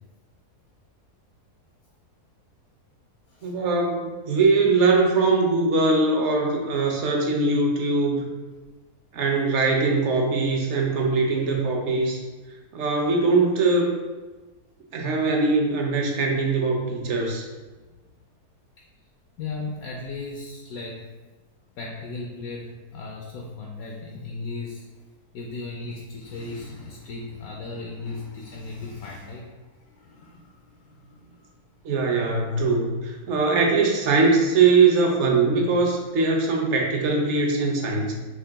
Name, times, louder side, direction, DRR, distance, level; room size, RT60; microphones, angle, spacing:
voice 1, 3.4-8.3 9.1-12.2 12.7-14.0 14.9-17.5 31.8-38.1, right 3 dB, 55° right, 1 dB, 0.9 m, -21 dB
voice 2, 19.4-21.0 21.8-24.8 25.3-31.5, left 3 dB, 70° left, -1 dB, 1.0 m, -36 dB
4.8 x 3.1 x 3.4 m, 1.2 s
omnidirectional pair, 1.7 m